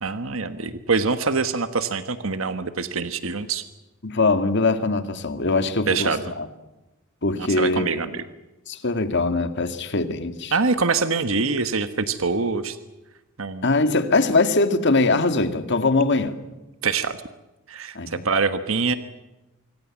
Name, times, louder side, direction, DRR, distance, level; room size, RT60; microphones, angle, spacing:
voice 1, 0.0-3.6 5.9-6.3 7.4-8.2 10.5-12.8 13.4-13.7 16.8-17.2 17.7-19.0, right 4 dB, 75° right, 1.4 m, -24 dB
voice 2, 4.0-6.5 7.2-7.9 8.7-10.5 13.6-16.4 17.9-18.2, left 3 dB, 60° left, 2.1 m, -22 dB
25.5 x 24.0 x 7.3 m
head